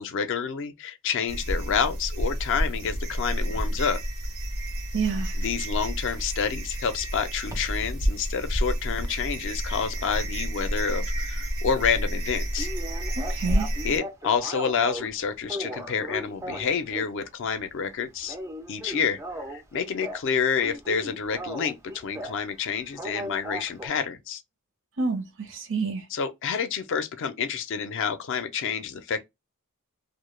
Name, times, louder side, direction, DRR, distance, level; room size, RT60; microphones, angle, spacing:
voice 1, 0.0-4.0 5.4-12.7 13.8-18.4 18.7-19.2 19.5-24.4 26.1-29.2, left 6 dB, 55° left, 0.4 m, -28 dB
sound 1, 1.3-14.0, equal, 85° right, 0.9 m, -30 dB
voice 2, 4.9-5.3 13.2-13.7 25.0-26.0, right 4 dB, 60° right, 0.6 m, -28 dB
sound 2, 5.1-5.3 7.4-7.9 8.3-10.5 10.8-10.9 11.3-11.4 11.7-11.8 12.0-12.1 12.6-15.1 15.5-17.2 17.6-17.9 18.2-20.3 20.6-22.4 22.9-23.9, equal, 15° right, 0.3 m, -38 dB
2.2 x 2.0 x 3.0 m
head